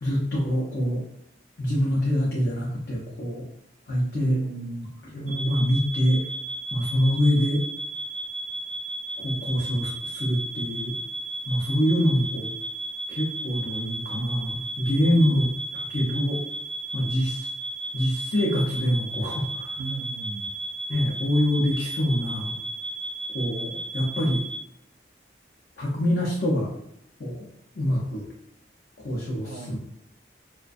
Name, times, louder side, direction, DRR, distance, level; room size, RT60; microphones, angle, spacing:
voice 1, 0.0-1.0 1.6-3.5 3.9-4.4 5.1-6.2 6.7-7.6 9.2-11.0 11.5-12.5 13.1-16.4 16.9-17.5 17.9-19.8 20.9-22.5 23.3-24.4 25.8-26.7 27.2-27.5 27.8-28.3 29.0-29.8, equal, 65° left, -4 dB, 0.5 m, -25 dB
voice 2, 4.1-4.9 15.0-15.4 19.8-20.5 29.4-29.8, right 3 dB, 75° right, 4 dB, 0.3 m, -36 dB
sound 1, 5.3-24.6, right 1 dB, 40° right, 1.0 m, -34 dB
2.5 x 2.2 x 2.3 m, 0.72 s
head